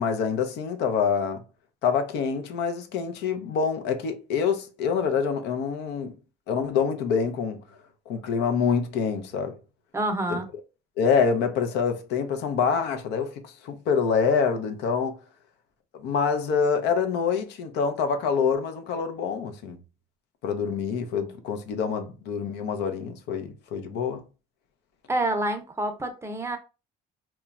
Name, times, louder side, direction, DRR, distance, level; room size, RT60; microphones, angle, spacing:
voice 1, 0.0-1.4 1.8-6.1 6.5-7.6 8.1-9.5 11.0-15.2 16.0-19.8 20.4-24.2, left 6 dB, 85° left, 0.6 m, -26 dB
voice 2, 9.9-10.5 25.1-26.6, right 1 dB, 15° right, 0.5 m, -27 dB
2.9 x 2.2 x 2.3 m
cardioid pair, 110°, 17 cm